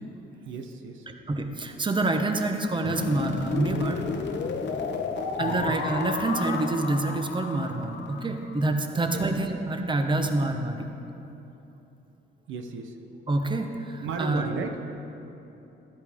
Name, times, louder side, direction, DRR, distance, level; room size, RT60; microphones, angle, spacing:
voice 1, 0.4-1.1 5.4-5.7 8.9-9.2 12.5-13.0 14.0-15.0, right 5 dB, 80° right, 5 dB, 1.0 m, -35 dB
voice 2, 1.3-4.0 5.4-10.9 13.3-14.6, right 2 dB, 25° right, 5 dB, 1.1 m, -27 dB
sound 1, 2.8-8.8, left 5 dB, 65° left, 1.0 m, -32 dB
15.0 x 12.0 x 3.6 m, 3.0 s
cardioid pair, 90°, 20 cm